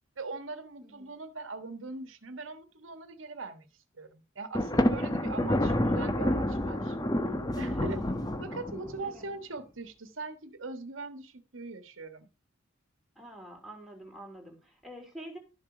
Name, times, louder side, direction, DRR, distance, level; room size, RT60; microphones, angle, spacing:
voice 1, 0.2-3.7 3.9-7.0 7.6-8.0 8.4-12.3, right 3 dB, 85° right, 1.4 m, -41 dB
voice 2, 0.8-1.1 7.7-8.6 9.0-9.3 13.1-15.4, right 1 dB, ahead, 3.3 m, -47 dB
Thunder, 4.5-9.1, left 1 dB, 20° left, 1.0 m, -29 dB
12.5 x 7.2 x 4.9 m
head